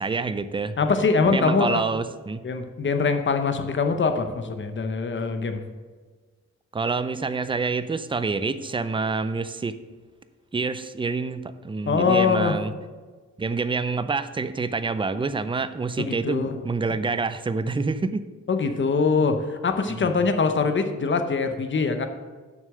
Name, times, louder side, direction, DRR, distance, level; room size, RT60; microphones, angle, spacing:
voice 1, 0.0-0.7 1.2-2.4 6.7-9.8 10.5-12.7 13.4-18.3 19.9-20.2, right 4 dB, 15° right, 12 dB, 0.4 m, -27 dB
voice 2, 0.8-2.0 2.4-5.6 11.9-12.6 16.0-16.6 18.5-22.1, left 4 dB, 40° left, 7 dB, 0.8 m, -23 dB
7.2 x 6.3 x 6.7 m, 1.4 s
wide cardioid pair, 130°, 30 cm